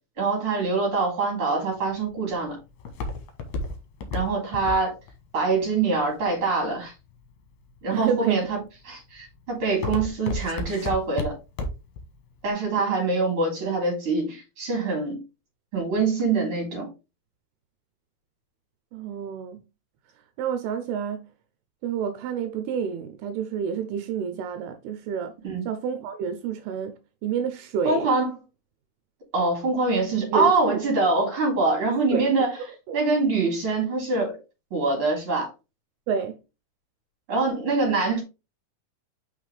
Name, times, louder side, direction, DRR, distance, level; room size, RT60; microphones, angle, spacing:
voice 1, 0.2-2.6 4.1-4.9 5.3-6.9 7.8-8.6 8.9-11.3 12.4-15.2 15.7-16.9 25.4-25.6 27.8-28.3 29.3-32.5 32.9-34.4 34.7-35.5 37.3-38.2, right 3 dB, 35° right, 4.0 m, -24 dB
Walk footsteps, 1.7-6.8 7.4-7.9 8.4-8.8 9.1-12.0 12.3-12.4, left 2 dB, 65° left, 2.6 m, -32 dB
voice 2, 7.9-8.4 12.8-13.0 18.9-19.6 20.4-21.3 21.8-25.3 25.7-28.1 30.3-30.8 31.9-32.3 32.9-33.0 36.1-36.4, right 7 dB, 85° right, 2.7 m, -29 dB
5.8 x 5.6 x 3.3 m
omnidirectional pair, 4.5 m